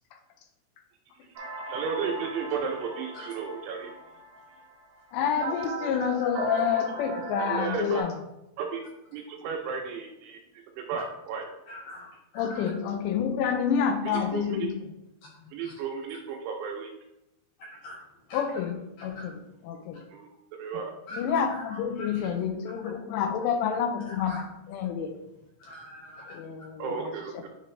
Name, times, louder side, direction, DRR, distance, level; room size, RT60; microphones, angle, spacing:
sound 1, 1.4-8.0, right 3 dB, 55° right, 1.7 m, -38 dB
voice 1, 1.5-3.9 7.4-8.1 8.6-8.8 9.1-10.4 10.7-11.5 14.0-14.7 15.5-16.9 20.1-20.9 26.8-27.5, right 6 dB, 80° right, 2 dB, 2.5 m, -34 dB
voice 2, 5.1-8.1 12.4-14.8 18.3-19.4 19.6-20.0 21.1-25.2 26.3-27.1, left 7 dB, 85° left, 6 dB, 2.7 m, -28 dB
voice 3, 11.7-12.6 17.8-17.9 18.3-18.4 19.1-19.2 21.1-21.4 21.7-22.1 24.1-24.4 25.6-26.2, left 1 dB, 65° left, -4 dB, 2.3 m, -43 dB
9.4 x 3.4 x 3.1 m, 0.89 s
omnidirectional pair, 5.1 m